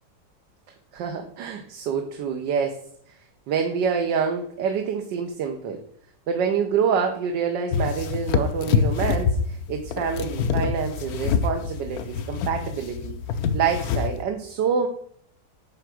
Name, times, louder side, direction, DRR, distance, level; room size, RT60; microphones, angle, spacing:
voice 1, 0.9-2.8 3.5-5.8 6.3-13.1 13.5-14.9, right 6 dB, 75° right, 4 dB, 1.5 m, -26 dB
sound 1, 7.7-14.2, left 6 dB, 65° left, 1.0 m, -26 dB
9.5 x 3.4 x 6.2 m, 0.63 s
omnidirectional pair, 2.0 m